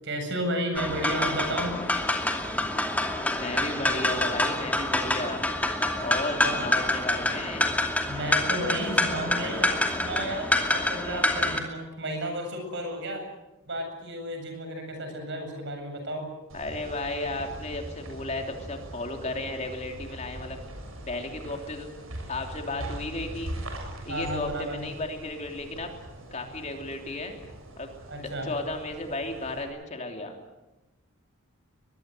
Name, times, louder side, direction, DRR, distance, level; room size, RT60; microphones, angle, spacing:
voice 1, 0.0-1.8 6.4-6.6 8.1-13.2 13.7-16.3 24.1-24.8 28.1-28.5, right 1 dB, 60° right, 5 dB, 7.8 m, -32 dB
sound 1, 0.8-11.6, left 1 dB, 5° left, 2.6 m, -27 dB
voice 2, 3.3-5.4 6.0-7.7 16.5-20.6 21.1-21.9 22.3-23.5 24.0-25.9 26.3-27.4 27.8-27.9 28.2-30.3, left 2 dB, 35° left, 3 dB, 3.2 m, -34 dB
sound 2, 16.5-29.6, right 1 dB, 75° right, 7.3 m, -41 dB
22.5 x 22.5 x 8.0 m, 1.0 s
head